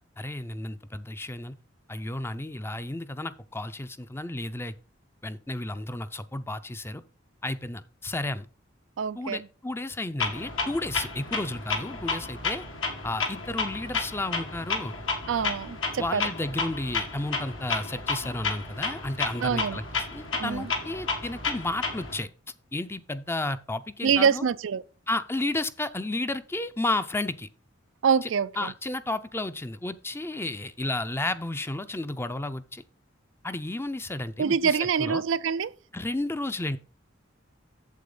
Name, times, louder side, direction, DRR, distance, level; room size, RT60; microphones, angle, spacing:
voice 1, 0.2-1.5 1.9-4.7 5.2-7.0 7.4-8.5 9.1-12.6 13.0-14.9 16.0-22.3 22.7-24.4 25.1-27.5 28.2-28.3 28.6-32.8 33.4-35.2 35.9-36.8, left 2 dB, 15° left, 0.5 m, -32 dB
voice 2, 9.0-9.5 15.3-16.2 19.4-19.8 20.3-20.7 24.0-24.8 28.0-28.7 34.4-35.7, right 6 dB, 75° right, 0.4 m, -25 dB
Clock, 10.2-22.2, left 4 dB, 80° left, 2.2 m, -32 dB
8.4 x 7.7 x 3.9 m
head